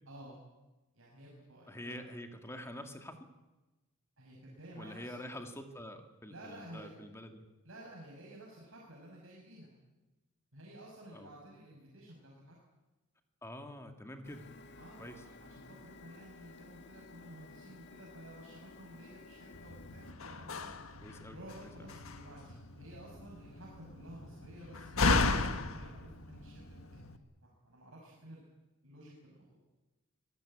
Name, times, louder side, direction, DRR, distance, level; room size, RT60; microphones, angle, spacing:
voice 1, 0.1-0.4 0.9-2.0 4.2-5.1 6.3-6.9 7.6-9.7 10.5-12.6 14.8-20.7 21.3-27.1 27.4-28.5 28.8-29.6, right 1 dB, 65° right, -3 dB, 5.8 m, -53 dB
voice 2, 1.7-3.3 4.8-7.5 11.1-11.3 13.4-14.5 15.0-15.2 21.0-21.9, left 1 dB, 10° left, 6 dB, 2.1 m, -46 dB
Printer, 14.2-20.1, left 3 dB, 50° left, 1.9 m, -54 dB
Slam, 19.5-27.2, left 3 dB, 70° left, 1.6 m, -35 dB
25.0 x 18.5 x 8.8 m, 1.1 s
head